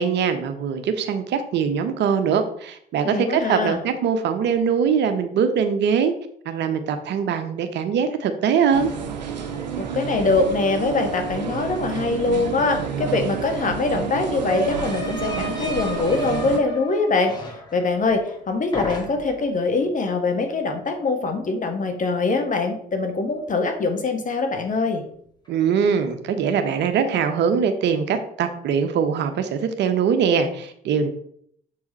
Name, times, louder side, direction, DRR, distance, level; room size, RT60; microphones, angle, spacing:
voice 1, 0.0-6.1 6.5-8.9 25.5-31.1, right 7 dB, 55° right, 8 dB, 0.9 m, -22 dB
voice 2, 3.0-3.8 9.5-25.0, left 3 dB, 40° left, 5 dB, 1.5 m, -23 dB
sound 1, 8.7-16.6, right 7 dB, 90° right, 0.7 m, -30 dB
sound 2, 12.8-12.9 13.2-18.4 18.7-19.5, equal, 20° left, 2.1 m, -33 dB
7.2 x 4.8 x 4.1 m, 0.65 s
hypercardioid pair, 50°, 21 cm